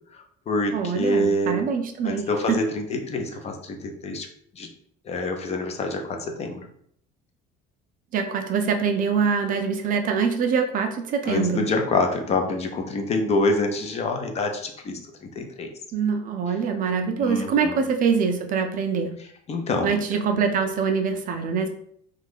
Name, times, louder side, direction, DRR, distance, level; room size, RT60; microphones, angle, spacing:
voice 1, 0.1-1.7 2.0-4.3 4.6-4.7 5.1-6.6 11.3-15.7 17.2-17.8 19.5-20.0, left 2 dB, 35° left, 4 dB, 0.5 m, -26 dB
voice 2, 0.7-2.6 8.1-11.7 15.9-19.1 19.8-21.7, right 6 dB, 45° right, 5 dB, 0.4 m, -24 dB
2.5 x 2.3 x 3.5 m, 0.67 s
cardioid pair, 125°, 20 cm